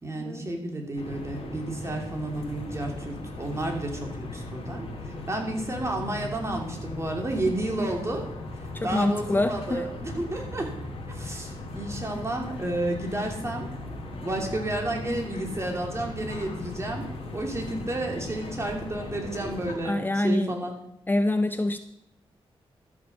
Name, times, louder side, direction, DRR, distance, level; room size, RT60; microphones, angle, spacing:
voice 1, 0.0-8.3 8.6-10.7 11.1-13.7 14.2-20.7, right 1 dB, 30° right, 1 dB, 3.0 m, -31 dB
sound 1, 1.0-19.8, left 2 dB, 85° left, 2.5 m, -38 dB
voice 2, 8.7-9.9 19.8-20.5 21.1-21.8, left 1 dB, 20° left, 10 dB, 0.6 m, -25 dB
13.0 x 6.6 x 6.1 m, 0.77 s
cardioid pair, 75°, 10 cm